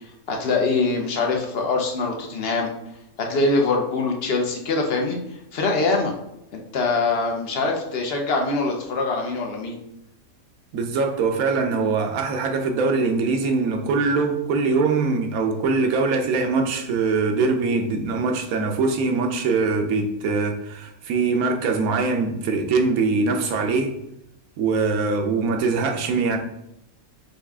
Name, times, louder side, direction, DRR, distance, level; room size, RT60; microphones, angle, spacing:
voice 1, 0.3-2.7 3.2-5.2 5.5-6.1 6.5-9.8, left 3 dB, 50° left, 1 dB, 0.9 m, -23 dB
voice 2, 10.7-23.9 24.6-26.4, right 4 dB, 80° right, 4 dB, 1.1 m, -22 dB
5.5 x 2.4 x 3.5 m, 0.82 s
omnidirectional pair, 1.5 m